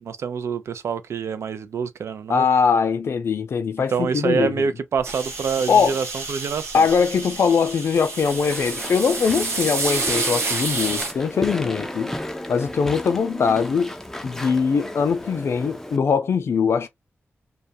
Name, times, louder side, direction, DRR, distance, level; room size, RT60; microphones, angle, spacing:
voice 1, 0.0-2.5 3.9-6.9, right 6 dB, 85° right, 0.4 m, -26 dB
voice 2, 2.3-4.5 5.7-6.0 6.7-12.1 12.5-13.9 14.2-16.9, left 6 dB, 70° left, 0.5 m, -21 dB
sound 1, 5.0-11.1, right 3 dB, 70° right, 0.9 m, -29 dB
Walk footsteps / Chatter / Squeak, 8.3-16.0, left 1 dB, 10° left, 0.3 m, -34 dB
2.3 x 2.0 x 2.6 m
wide cardioid pair, 130°, 5 cm